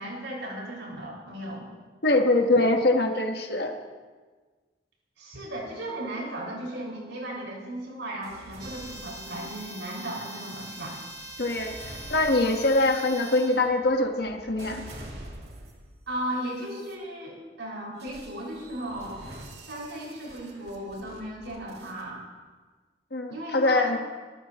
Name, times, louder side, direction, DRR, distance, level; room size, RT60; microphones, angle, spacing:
voice 1, 0.0-1.6 5.2-11.0 16.1-19.3 19.7-22.2 23.3-24.0, right 1 dB, 90° right, -3 dB, 6.1 m, -36 dB
voice 2, 2.0-3.7 11.4-11.8 12.1-14.8 23.1-24.0, left 2 dB, 60° left, 3 dB, 1.5 m, -23 dB
sound 1, 8.2-9.8 10.5-16.0 16.6-16.9 18.0-22.0, right 1 dB, 60° right, 2.8 m, -46 dB
sound 2, 8.6-13.7, right 1 dB, 25° right, 2.7 m, -42 dB
26.0 x 13.0 x 3.1 m, 1.4 s
head